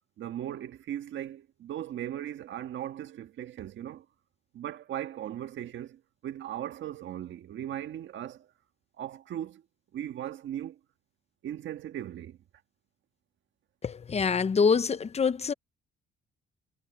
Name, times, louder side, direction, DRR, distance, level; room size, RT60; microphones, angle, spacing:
voice 1, 0.2-4.0 4.5-8.5 9.0-9.6 9.9-10.8 11.4-12.4, right 11 dB, 70° right, 1.6 m, -38 dB
voice 2, 13.8-15.5, left 5 dB, 30° left, 0.7 m, -25 dB
cardioid pair, 90°, 20 cm